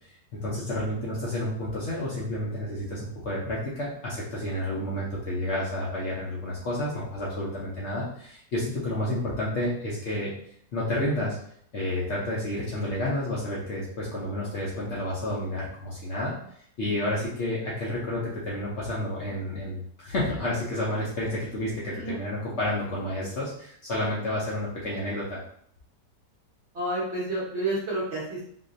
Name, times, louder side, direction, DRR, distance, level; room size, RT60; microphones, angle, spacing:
voice 1, 0.3-10.3 10.7-11.4 11.7-16.4 16.8-25.4, left 1 dB, 55° left, -6 dB, 0.8 m, -30 dB
voice 2, 21.9-22.2 26.7-28.4, right 1 dB, 55° right, -6 dB, 0.8 m, -30 dB
3.8 x 2.6 x 2.5 m, 0.65 s
omnidirectional pair, 1.8 m